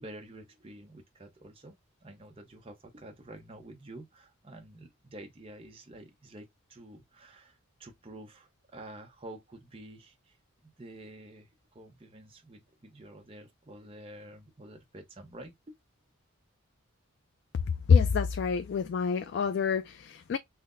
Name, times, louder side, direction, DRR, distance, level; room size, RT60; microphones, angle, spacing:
voice 1, 0.0-10.4 10.6-15.8, right 1 dB, 25° right, 0.7 m, -49 dB
voice 2, 17.9-20.4, left 6 dB, 55° left, 0.3 m, -26 dB
5.6 x 2.1 x 2.4 m
head